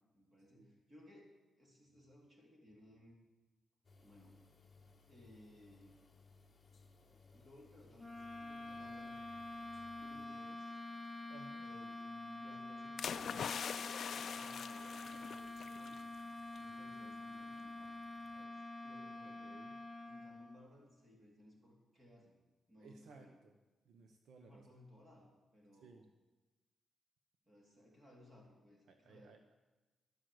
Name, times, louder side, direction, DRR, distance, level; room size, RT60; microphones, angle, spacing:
voice 1, 0.1-3.2 4.0-4.4 5.1-6.0 7.3-9.2 10.0-10.8 11.6-16.0 16.5-18.0 18.3-19.5 20.0-22.4 22.7-23.4 24.4-26.0 27.5-29.3, left 1 dB, 25° right, -1 dB, 3.7 m, -62 dB
sound 1, 3.8-10.3, left 4 dB, 20° left, 1.4 m, -64 dB
sound 2, 8.0-20.7, left 2 dB, 5° left, 1.2 m, -47 dB
voice 2, 11.3-11.6 19.4-19.8 22.8-23.5 23.8-24.7 25.8-26.1 28.9-29.5, right 4 dB, 65° right, 6 dB, 1.1 m, -60 dB
sound 3, 13.0-16.0 16.3-16.6, left 7 dB, 50° left, 0.4 m, -43 dB
12.0 x 11.5 x 7.9 m, 1.2 s
wide cardioid pair, 160°, 0 cm